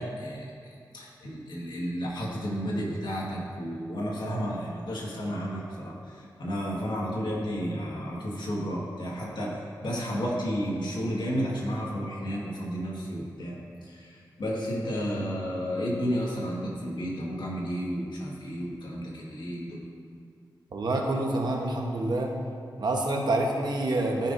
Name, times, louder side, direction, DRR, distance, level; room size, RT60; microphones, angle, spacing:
voice 1, 0.0-19.8, equal, 70° left, -4 dB, 1.7 m, -32 dB
voice 2, 20.7-22.3 22.8-24.3, right 2 dB, 65° right, 1 dB, 1.0 m, -27 dB
13.5 x 5.7 x 2.6 m, 2.4 s
wide cardioid pair, 110°, 8 cm